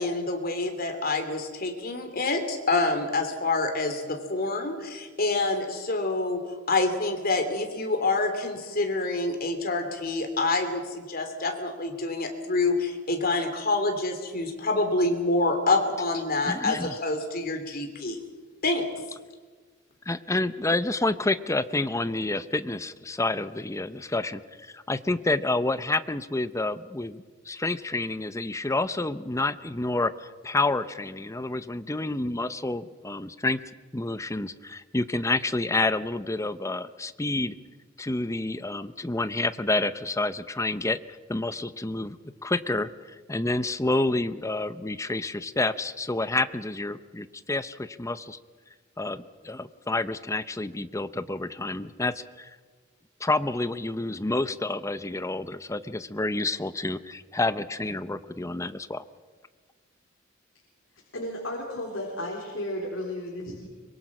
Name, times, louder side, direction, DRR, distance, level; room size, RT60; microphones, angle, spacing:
voice 1, 0.0-6.4 6.7-18.2 18.6-18.8, left 2 dB, 50° left, 6 dB, 3.1 m, -27 dB
voice 2, 16.4-16.9 20.1-33.6 33.9-37.5 38.0-41.0 41.3-48.4 49.0-52.5 53.2-59.0, left 2 dB, 15° left, 13 dB, 0.7 m, -29 dB
voice 3, 61.1-63.7, left 1 dB, 70° left, -2 dB, 3.9 m, -33 dB
24.5 x 22.5 x 6.1 m, 1.4 s
head